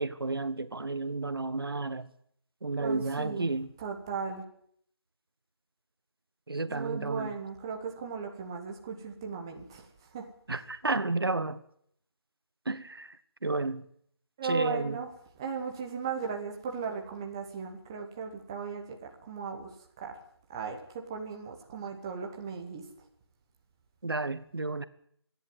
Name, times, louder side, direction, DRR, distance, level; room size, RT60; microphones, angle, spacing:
voice 1, 0.0-2.1 2.6-3.7 6.5-7.3 10.5-11.6 12.6-13.2 13.4-13.8 14.4-15.0 24.0-24.8, right 3 dB, 60° right, 1.4 m, -32 dB
voice 2, 2.8-3.5 3.8-4.4 6.7-9.9 10.1-10.3 14.4-15.1 15.4-19.7 20.0-20.2 20.5-22.8, right 5 dB, 10° right, 1.1 m, -36 dB
26.5 x 11.0 x 9.5 m
figure-of-eight pair, 165°, 14 cm